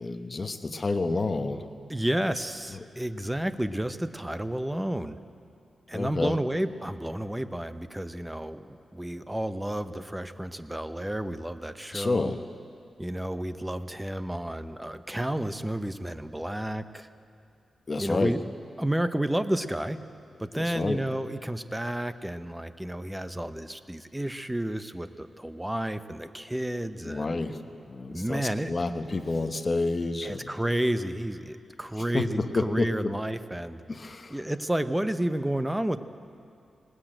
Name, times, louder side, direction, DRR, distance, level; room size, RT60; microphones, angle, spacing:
voice 1, 0.0-1.7 2.7-2.8 5.9-6.4 11.9-12.4 17.9-18.4 20.6-21.0 27.0-27.6 27.9-30.5 32.0-33.1 33.9-34.4, left 3 dB, 30° left, 6 dB, 1.0 m, -29 dB
voice 2, 1.9-5.2 5.9-12.3 13.0-17.1 18.0-18.4 18.8-20.0 20.4-27.4 28.1-28.7 30.2-33.8 34.3-36.0, right 1 dB, 5° right, 10 dB, 0.7 m, -31 dB
19.5 x 19.0 x 9.0 m, 2.5 s
wide cardioid pair, 135°, 0 cm